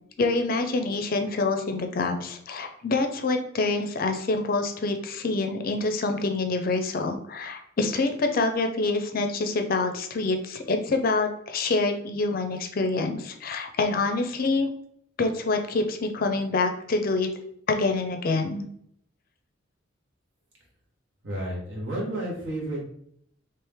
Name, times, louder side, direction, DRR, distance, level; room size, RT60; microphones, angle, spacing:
voice 1, 0.2-14.7 15.2-17.3 17.7-18.7, left 3 dB, 50° left, 6 dB, 0.5 m, -26 dB
voice 2, 21.2-22.9, right 1 dB, 70° right, -4 dB, 1.5 m, -31 dB
3.2 x 2.9 x 3.4 m, 0.67 s
head